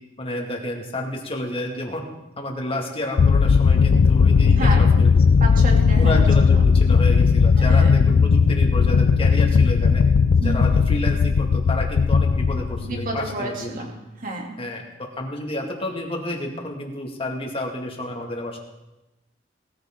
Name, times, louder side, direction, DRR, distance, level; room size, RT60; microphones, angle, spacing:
voice 1, 0.2-2.1 2.4-5.4 6.0-10.0 10.4-13.8 14.6-18.6, left 1 dB, 30° left, 2 dB, 2.2 m, -30 dB
sound 1, 3.2-13.3, left 5 dB, 75° left, 0.4 m, -17 dB
voice 2, 4.5-4.8 5.4-6.2 7.6-7.9 10.4-10.8 12.8-13.9 14.2-14.5, right 2 dB, 45° right, 0 dB, 3.0 m, -30 dB
19.0 x 14.0 x 3.9 m, 0.98 s
head